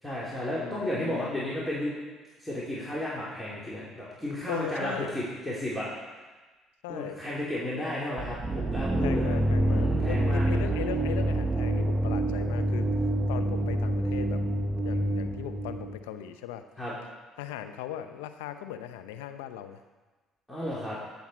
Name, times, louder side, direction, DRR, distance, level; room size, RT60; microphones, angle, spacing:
voice 1, 0.0-1.9 2.4-5.9 6.9-9.4 9.7-10.4 16.8-16.9 20.5-21.0, left 1 dB, 10° left, -7 dB, 3.2 m, -33 dB
voice 2, 0.5-1.5 4.5-5.1 6.8-7.2 9.0-12.9 13.3-14.4 14.8-16.6 17.4-19.8, left 10 dB, 80° left, 8 dB, 0.6 m, -38 dB
sound 1, 8.2-16.0, right 1 dB, 20° right, 1.0 m, -27 dB
14.5 x 7.3 x 4.3 m, 1.3 s
hypercardioid pair, 55°, 0 cm